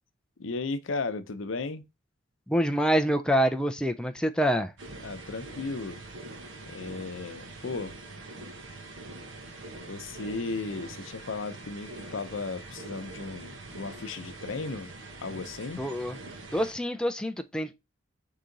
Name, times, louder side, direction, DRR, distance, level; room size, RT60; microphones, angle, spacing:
voice 1, 0.4-1.8 5.0-6.0 6.7-8.0 9.8-14.9 15.2-15.8, left 3 dB, 85° left, 0.7 m, -35 dB
voice 2, 2.5-4.7 15.8-16.2 16.5-17.7, equal, 5° left, 0.4 m, -26 dB
sound 1, 4.8-16.7, right 2 dB, 70° right, 1.0 m, -44 dB
4.9 x 2.8 x 3.9 m
head